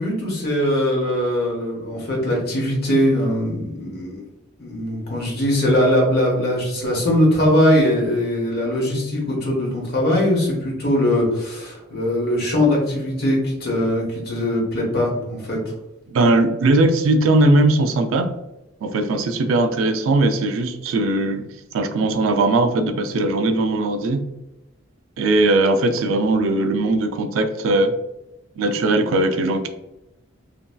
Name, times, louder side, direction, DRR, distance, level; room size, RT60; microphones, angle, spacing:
voice 1, 0.0-4.2 4.6-15.6, left 1 dB, 50° left, -2 dB, 1.1 m, -21 dB
voice 2, 16.1-18.3 18.8-24.2 25.2-27.9 28.6-29.7, right 2 dB, 75° right, 8 dB, 0.3 m, -19 dB
3.0 x 2.6 x 2.2 m, 0.94 s
head